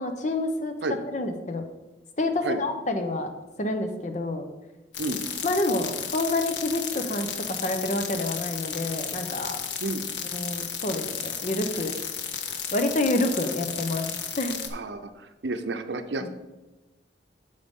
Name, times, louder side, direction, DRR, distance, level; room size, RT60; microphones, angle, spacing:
voice 1, 0.0-1.6 2.2-3.3 3.6-4.4 5.4-9.6 10.3-11.9 12.7-14.1 14.3-14.6 16.2-16.3, left 2 dB, 40° left, 6 dB, 0.8 m, -28 dB
sound 1, 4.9-14.7, left 8 dB, 80° left, 0.7 m, -33 dB
voice 2, 14.7-16.3, right 2 dB, 75° right, 8 dB, 0.7 m, -31 dB
7.9 x 6.7 x 3.7 m, 1.1 s
head